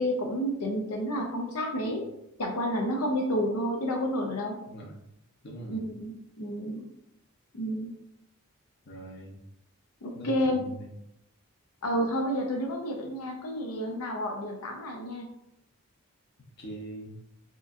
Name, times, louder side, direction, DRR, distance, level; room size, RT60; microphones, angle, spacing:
voice 1, 0.0-2.0 2.4-4.6 5.7-6.8 7.5-7.9 10.0-10.6 11.8-15.3, equal, 90° left, 1 dB, 0.7 m, -30 dB
voice 2, 4.7-5.0 5.4-5.8 8.8-9.4 10.1-10.9 16.6-17.2, right 1 dB, 50° left, -1 dB, 0.9 m, -42 dB
4.7 x 2.9 x 2.6 m, 0.80 s
head